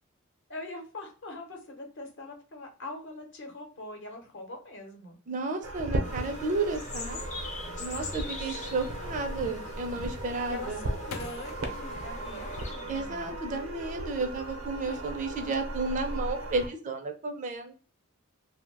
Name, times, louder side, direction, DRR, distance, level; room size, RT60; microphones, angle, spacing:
voice 1, 0.5-5.2 8.4-8.6 10.5-13.4 14.9-15.1, left 2 dB, 60° left, 3 dB, 0.8 m, -43 dB
voice 2, 5.3-7.2 7.8-10.8 12.9-17.7, right 3 dB, 35° right, 5 dB, 0.4 m, -32 dB
sound 1, 5.6-16.7, right 1 dB, 85° right, 0.6 m, -37 dB
sound 2, 6.0-13.0, left 3 dB, 35° left, 0.5 m, -42 dB
sound 3, 10.1-13.2 13.7-14.4 14.8-15.2, left 5 dB, 85° left, 0.5 m, -48 dB
2.6 x 2.1 x 3.3 m, 0.38 s
head